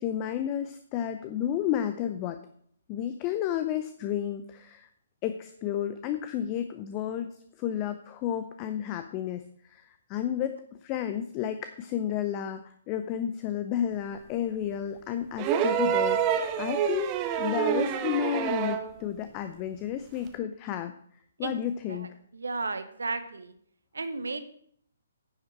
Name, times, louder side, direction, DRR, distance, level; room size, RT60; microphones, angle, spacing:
voice 1, 0.0-2.4 2.9-4.9 5.2-20.9 21.4-22.1, left 10 dB, 25° left, 9 dB, 0.5 m, -32 dB
sound 1, 15.4-18.9 20.3-20.4, right 9 dB, 25° right, 0.8 m, -27 dB
voice 2, 22.3-23.5 23.9-24.4, right 3 dB, 70° right, 10 dB, 1.0 m, -33 dB
9.9 x 7.1 x 4.5 m, 0.64 s
figure-of-eight pair, 130°, 0 cm